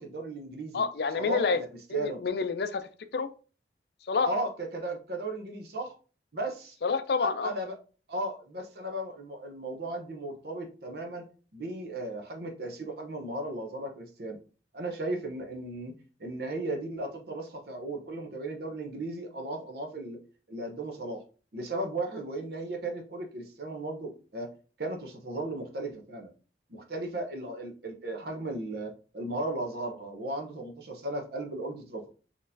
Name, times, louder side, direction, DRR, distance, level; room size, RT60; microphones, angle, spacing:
voice 1, 0.0-0.8 1.1-1.7 1.9-2.2 4.2-5.9 6.3-6.8 7.2-7.8 8.1-11.2 11.5-14.4 14.7-20.2 20.5-21.2 21.5-24.5 24.8-26.3 26.7-32.1, right 2 dB, 60° right, 4 dB, 0.8 m, -36 dB
voice 2, 0.7-1.6 1.9-2.9 3.1-3.3 4.1-4.3 6.8-7.5, left 5 dB, 60° left, 11 dB, 0.4 m, -28 dB
4.1 x 3.1 x 2.6 m, 0.36 s
head